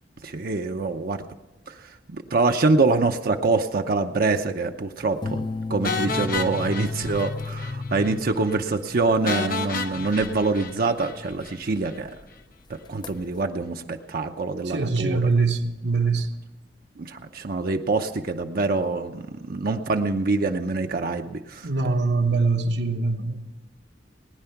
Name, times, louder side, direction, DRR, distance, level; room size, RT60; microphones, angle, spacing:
voice 1, 0.2-1.2 1.7-1.8 2.1-5.4 5.7-12.1 12.7-15.3 17.0-21.7, right 3 dB, 55° right, 0.7 m, -25 dB
sound 1, 5.2-12.2 12.7-13.4, left 3 dB, 25° left, 0.4 m, -35 dB
sound 2, 5.8-7.8 8.0-8.1 8.5-8.6 9.3-11.6, left 4 dB, 55° left, 0.9 m, -31 dB
voice 2, 14.7-16.3 21.6-23.5, right 3 dB, 70° right, 1.2 m, -23 dB
19.5 x 10.0 x 5.8 m
head